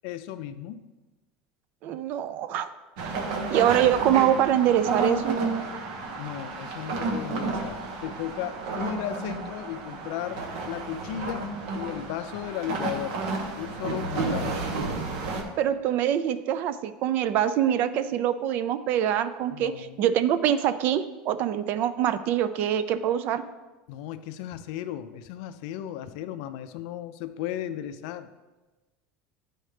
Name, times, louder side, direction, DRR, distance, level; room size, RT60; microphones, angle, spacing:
voice 1, 0.0-0.8 6.2-13.2 13.6-14.6 19.5-20.0 23.9-28.3, left 11 dB, 65° left, 11 dB, 0.4 m, -35 dB
voice 2, 1.8-2.7 3.0-3.2 3.5-5.4 15.6-23.4, right 10 dB, 45° right, 13 dB, 0.3 m, -24 dB
sound 1, 3.0-15.4, right 3 dB, 75° right, 1.0 m, -31 dB
10.0 x 4.2 x 3.3 m, 1.2 s
cardioid pair, 160°, 4 cm